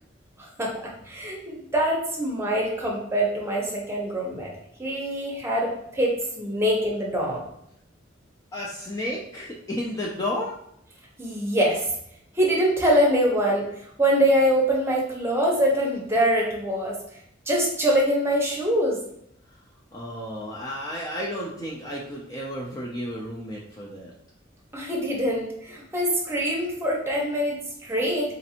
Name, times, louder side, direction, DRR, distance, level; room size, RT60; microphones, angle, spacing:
voice 1, 0.4-4.5 4.8-7.4 11.2-11.8 12.4-13.7 14.0-17.0 17.5-19.0 24.7-28.3, equal, 15° right, -2 dB, 0.8 m, -24 dB
voice 2, 8.5-10.6 19.9-24.1, left 1 dB, 20° left, -3 dB, 0.4 m, -32 dB
4.0 x 2.5 x 2.8 m, 0.73 s
head